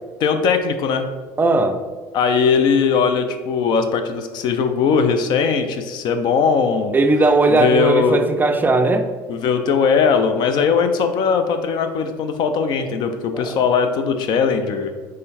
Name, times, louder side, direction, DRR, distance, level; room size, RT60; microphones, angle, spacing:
voice 1, 0.2-1.1 2.1-7.0 7.5-8.2 9.3-14.9, left 6 dB, 55° left, 7 dB, 0.5 m, -19 dB
voice 2, 1.4-1.8 6.9-9.1 13.3-13.4, right 2 dB, 20° right, 6 dB, 0.4 m, -17 dB
3.7 x 3.2 x 4.1 m, 1.4 s
hypercardioid pair, 75°, 9 cm